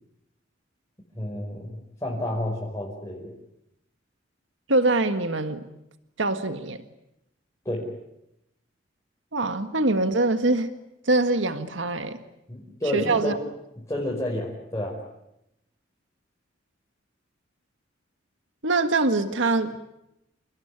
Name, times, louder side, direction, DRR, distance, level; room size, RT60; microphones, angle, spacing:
voice 1, 1.2-3.3 7.7-7.8 12.5-13.4 13.9-15.0, left 1 dB, 15° left, -3 dB, 5.4 m, -30 dB
voice 2, 4.7-5.7 6.2-6.8 9.3-10.7 11.1-12.2 12.9-13.4 18.6-19.8, right 2 dB, 75° right, 9 dB, 1.7 m, -23 dB
29.5 x 20.0 x 9.7 m, 0.86 s
head